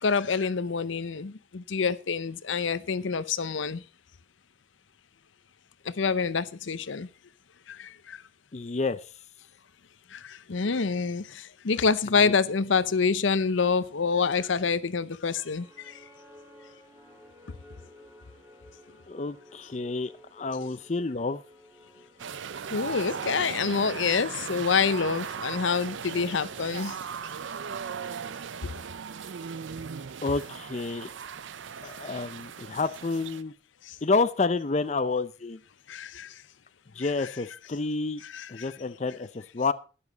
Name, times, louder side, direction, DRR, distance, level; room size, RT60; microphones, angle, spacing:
voice 1, 0.0-3.8 5.8-7.1 7.7-8.2 10.1-16.0 22.7-27.0 28.6-28.7 33.8-34.0 35.9-36.4 38.2-38.7, left 5 dB, 75° left, 0.7 m, -27 dB
voice 2, 8.5-9.0 12.2-12.3 19.1-21.4 30.2-31.1 31.8-33.5 34.0-35.6 36.9-38.2 38.5-39.7, left 3 dB, 35° left, 0.5 m, -29 dB
sound 1, 15.3-25.5, equal, 15° right, 2.6 m, -54 dB
sound 2, 22.2-33.4, right 6 dB, 70° right, 0.5 m, -38 dB
12.0 x 10.5 x 4.0 m
head